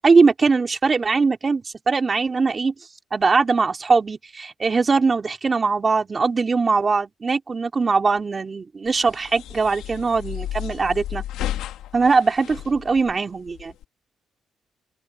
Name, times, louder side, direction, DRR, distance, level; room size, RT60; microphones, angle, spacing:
voice 1, 0.0-2.7 3.1-11.3 11.9-13.7, right 4 dB, 35° right, 3.6 m, -21 dB
sound 1, 8.9-13.8, left 12 dB, 90° left, 2.0 m, -33 dB
open air
cardioid pair, 90°, 0 cm